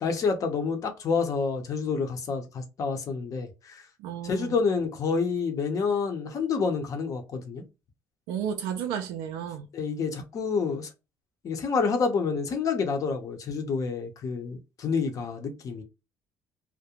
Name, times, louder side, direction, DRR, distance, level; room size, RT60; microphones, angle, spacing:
voice 1, 0.0-3.8 4.2-7.6 9.7-10.9 11.4-15.8, left 5 dB, 50° left, 0.7 m, -28 dB
voice 2, 4.0-4.6 8.3-9.7, right 8 dB, 85° right, 0.4 m, -32 dB
2.4 x 2.1 x 2.8 m
supercardioid pair, 80°, 7 cm